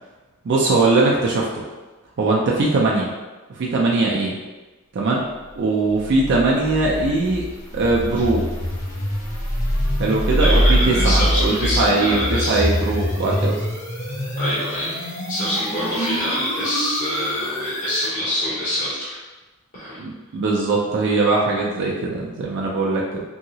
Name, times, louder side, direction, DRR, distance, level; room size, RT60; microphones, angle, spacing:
voice 1, 0.4-1.6 2.2-3.1 3.5-4.4 4.9-5.2 5.6-7.4 7.7-8.4 10.0-13.6 20.0-23.2, right 3 dB, 55° right, -3 dB, 0.4 m, -20 dB
sound 1, 6.0-18.1, equal, 75° left, 1.0 m, -24 dB
voice 2, 10.4-12.6 13.3-13.5 14.4-14.9 15.3-19.2 19.7-20.0, left 1 dB, 35° left, -11 dB, 0.7 m, -25 dB
2.8 x 2.7 x 2.7 m, 1.2 s
head